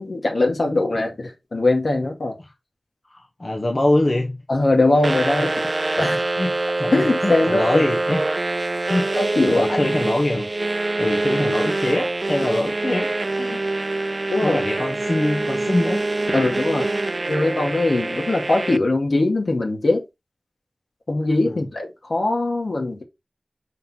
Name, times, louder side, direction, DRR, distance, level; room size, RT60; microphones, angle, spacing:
voice 1, 0.0-2.4 4.5-5.5 6.0-6.2 6.9-7.8 9.2-9.9 14.3-14.6 16.3-16.9 17.3-20.0 21.1-23.0, left 2 dB, 75° left, 2.2 m, -21 dB
voice 2, 3.1-4.4 6.4-8.2 8.9-9.1 9.5-10.5 11.0-13.8 14.4-16.0 21.5-21.6, left 1 dB, 50° left, 1.1 m, -24 dB
sound 1, 5.0-18.8, right 2 dB, 50° right, 0.4 m, -25 dB
5.5 x 4.0 x 4.4 m
wide cardioid pair, 50°, 0 cm